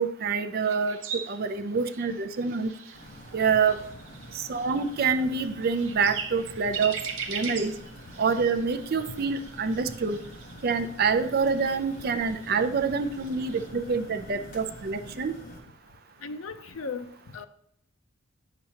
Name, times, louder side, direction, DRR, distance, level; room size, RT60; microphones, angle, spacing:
voice 1, 0.0-2.7 3.3-3.8 4.3-7.0 7.3-7.7 8.2-10.2 10.6-15.3, right 5 dB, 45° right, 0.4 m, -26 dB
sound 1, 0.6-13.7, right 6 dB, 60° right, 0.9 m, -41 dB
sound 2, 2.9-15.6, equal, 40° left, 1.6 m, -47 dB
voice 2, 16.2-17.5, left 4 dB, 75° left, 0.6 m, -37 dB
8.8 x 6.9 x 2.9 m
head